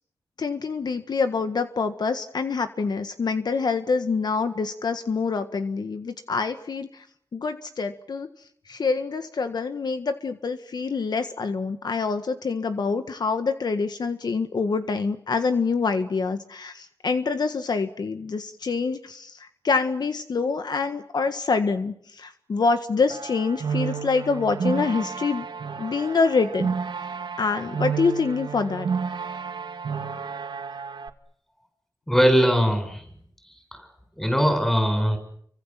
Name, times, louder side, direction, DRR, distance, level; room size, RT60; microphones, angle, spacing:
voice 1, 0.4-7.0 7.3-8.3 8.7-25.5 25.8-26.7 27.4-28.9, left 4 dB, 60° left, 8 dB, 1.6 m, -26 dB
sound 1, 23.1-31.1, right 6 dB, 75° right, 2.3 m, -31 dB
voice 2, 32.1-33.0 33.7-33.8 34.2-35.2, equal, 5° left, 6 dB, 7.6 m, -20 dB
30.0 x 25.0 x 7.7 m, 0.68 s
wide cardioid pair, 115°, 8 cm